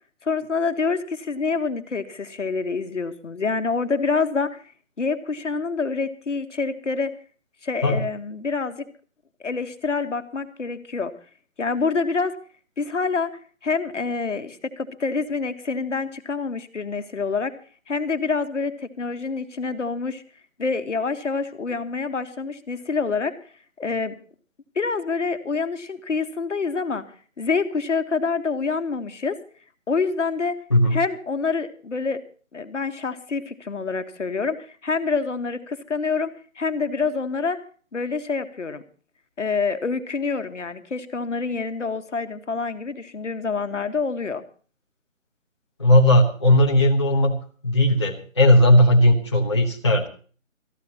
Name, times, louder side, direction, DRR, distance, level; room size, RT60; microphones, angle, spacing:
voice 1, 0.2-4.6 5.0-7.1 7.6-8.8 9.4-11.1 11.6-12.3 12.8-13.3 13.6-17.5 17.9-20.2 20.6-23.3 23.8-24.1 24.7-27.1 27.4-29.4 29.9-30.6 30.9-32.2 32.5-37.6 37.9-38.8 39.4-44.4, left 4 dB, 65° left, 8 dB, 1.5 m, -26 dB
voice 2, 45.8-47.4 47.6-50.1, left 1 dB, 20° left, -2 dB, 1.0 m, -17 dB
22.0 x 14.0 x 2.9 m, 0.40 s
figure-of-eight pair, 175°, 39 cm